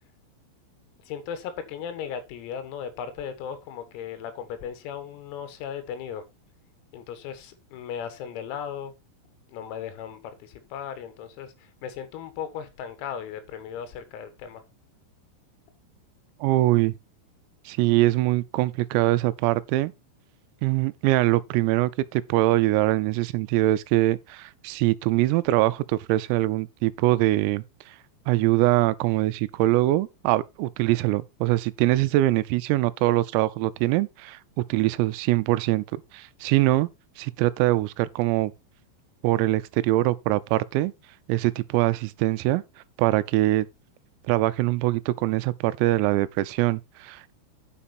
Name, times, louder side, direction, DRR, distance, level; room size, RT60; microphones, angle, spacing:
voice 1, 1.1-6.2 6.9-8.9 9.5-14.6, left 8 dB, 90° left, 4.2 m, -36 dB
voice 2, 16.4-16.9 17.7-19.9 20.6-27.6 28.3-34.4 34.7-35.8 36.1-36.9 37.2-38.5 39.2-40.9 41.3-42.6 43.0-43.7 44.3-47.3, right 17 dB, 90° right, 3.4 m, -23 dB
10.0 x 6.0 x 4.2 m
omnidirectional pair, 6.0 m